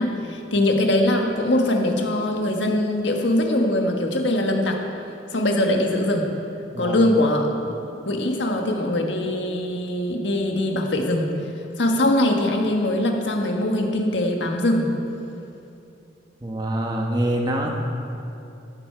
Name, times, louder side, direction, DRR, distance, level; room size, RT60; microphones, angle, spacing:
voice 1, 0.0-4.8 5.3-6.3 6.8-7.7 8.0-11.3 11.8-15.0, left 1 dB, 75° left, 2 dB, 1.5 m, -22 dB
voice 2, 16.4-17.7, right 1 dB, 25° right, 0 dB, 1.2 m, -25 dB
15.0 x 11.5 x 4.6 m, 2.8 s
head